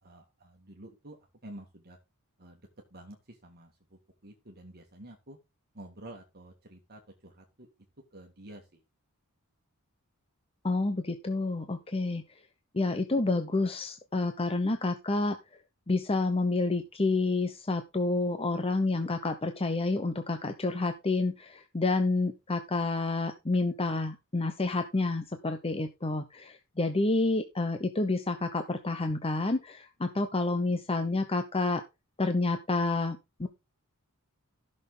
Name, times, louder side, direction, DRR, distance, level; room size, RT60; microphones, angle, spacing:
voice 1, 0.0-1.2 1.4-2.0 2.4-2.6 2.9-5.4 5.7-7.7 8.1-8.8 31.0-31.3, right 1 dB, 45° right, 2 dB, 2.0 m, -50 dB
voice 2, 10.6-12.2 12.7-15.4 15.9-31.8 32.2-33.5, left 3 dB, 25° left, 7 dB, 0.9 m, -29 dB
14.5 x 6.5 x 3.9 m, 0.25 s
head